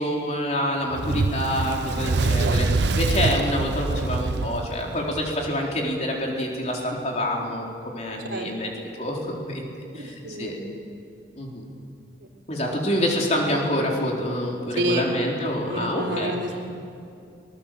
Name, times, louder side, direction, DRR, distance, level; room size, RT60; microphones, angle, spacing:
voice 1, 0.0-2.7 3.0-7.7 7.9-8.7 9.0-9.6 9.9-10.6 11.4-11.6 12.5-16.4, left 1 dB, 40° left, -1 dB, 4.1 m, -26 dB
Fire, 0.9-5.5, right 3 dB, 70° right, 0.7 m, -25 dB
voice 2, 9.9-10.6 12.7-13.0 14.8-15.1 15.6-16.6, right 1 dB, 90° right, 2 dB, 3.3 m, -29 dB
25.5 x 20.0 x 7.7 m, 2.5 s
head